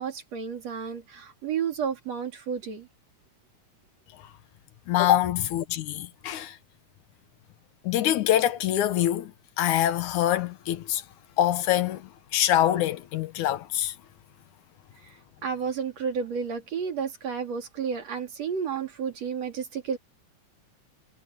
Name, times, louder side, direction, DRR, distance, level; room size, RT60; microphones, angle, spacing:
voice 1, 0.0-2.9 15.0-20.0, right 6 dB, 60° right, 4.0 m, -31 dB
voice 2, 4.9-6.6 7.8-9.3 9.6-11.0 11.4-13.9, left 12 dB, 85° left, 2.5 m, -25 dB
omnidirectional pair, 3.4 m